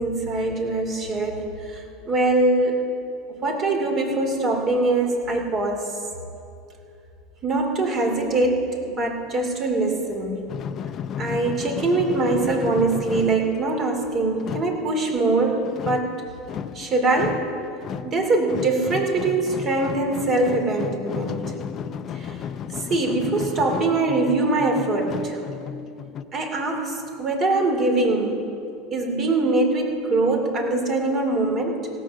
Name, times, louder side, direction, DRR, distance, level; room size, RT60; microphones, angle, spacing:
voice 1, 0.0-2.8 3.3-5.9 7.4-10.4 11.2-16.1 16.7-17.4 18.0-21.4 22.1-22.4 22.9-25.4 26.3-28.4 28.9-31.9, right 2 dB, 40° right, 2 dB, 2.6 m, -23 dB
sound 1, 10.5-26.2, left 8 dB, 40° left, 0.5 m, -34 dB
17.0 x 7.5 x 6.5 m, 2.6 s
hypercardioid pair, 90°, 0 cm